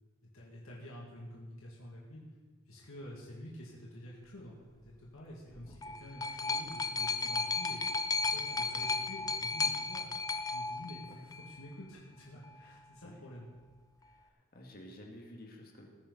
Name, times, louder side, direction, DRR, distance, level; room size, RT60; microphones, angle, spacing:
voice 1, 0.3-2.2 2.7-7.8 8.2-10.1 10.5-13.5, equal, 85° left, -3 dB, 2.3 m, -48 dB
sound 1, 5.5-11.5 12.4-12.5, left 4 dB, 15° left, 0.5 m, -34 dB
voice 2, 12.6-13.3 14.0-15.9, left 1 dB, 45° left, 1 dB, 2.0 m, -53 dB
19.5 x 9.9 x 4.1 m, 1.4 s
head